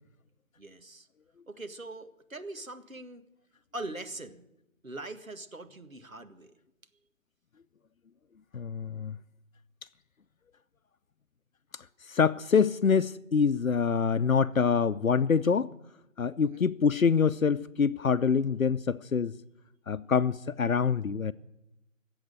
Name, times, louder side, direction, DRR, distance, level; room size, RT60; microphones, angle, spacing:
voice 1, 0.6-1.1 1.5-3.2 3.7-4.5 4.8-6.5 16.4-16.6, right 2 dB, 80° right, 1.9 m, -42 dB
voice 2, 8.5-9.2 12.1-15.7 16.2-19.3 19.9-21.3, left 6 dB, 90° left, 0.7 m, -25 dB
20.0 x 8.0 x 9.0 m
figure-of-eight pair, 170°, 40 cm